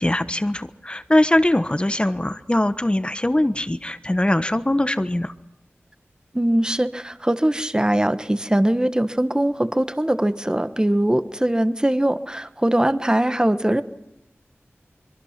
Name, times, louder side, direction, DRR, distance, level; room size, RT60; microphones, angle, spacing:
voice 1, 0.0-5.3, left 1 dB, 20° left, 11 dB, 1.1 m, -21 dB
voice 2, 6.3-13.8, right 1 dB, 15° right, 10 dB, 1.3 m, -21 dB
24.0 x 23.0 x 5.9 m, 0.88 s
wide cardioid pair, 45°, 5 cm